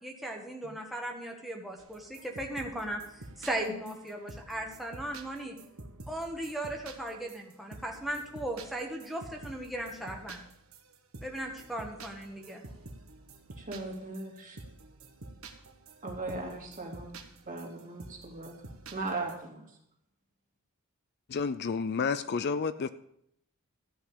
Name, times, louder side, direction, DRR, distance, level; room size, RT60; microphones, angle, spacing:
voice 1, 0.0-5.6 6.1-10.4 11.2-12.6, right 1 dB, ahead, 1.3 m, -37 dB
sound 1, 1.8-19.3, right 2 dB, 65° right, 1.3 m, -49 dB
voice 2, 13.6-14.6 16.0-18.5 18.9-19.8, right 2 dB, 35° right, 2.6 m, -38 dB
voice 3, 21.3-22.9, left 5 dB, 45° left, 0.4 m, -30 dB
14.0 x 5.6 x 8.1 m
head